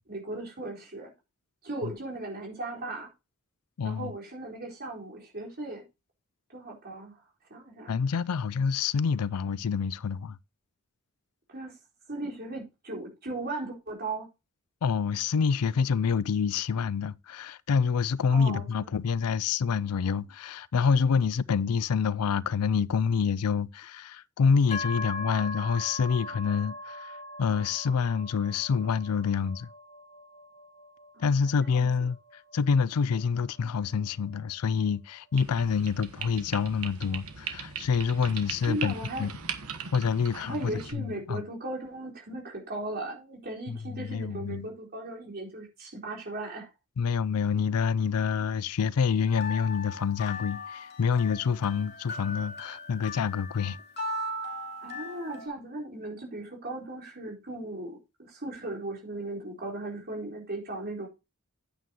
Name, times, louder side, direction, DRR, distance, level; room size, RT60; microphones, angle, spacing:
voice 1, 0.1-1.1 1.6-3.1 3.8-5.8 6.5-7.2 7.5-8.0 11.5-11.8 12.1-14.3 18.3-18.9 31.1-31.9 38.6-39.3 40.4-46.7 54.8-61.1, right 2 dB, 45° right, 4.1 m, -37 dB
voice 2, 3.8-4.1 7.9-10.4 14.8-29.7 31.2-38.9 39.2-39.3 39.9-41.4 43.7-44.7 47.0-53.8, left 6 dB, 85° left, 0.4 m, -27 dB
sound 1, 24.7-38.4, left 2 dB, 30° left, 1.5 m, -42 dB
sound 2, 35.4-40.9, right 7 dB, 75° right, 1.3 m, -39 dB
sound 3, 49.3-55.5, left 1 dB, 50° left, 2.3 m, -38 dB
9.2 x 9.1 x 3.0 m
head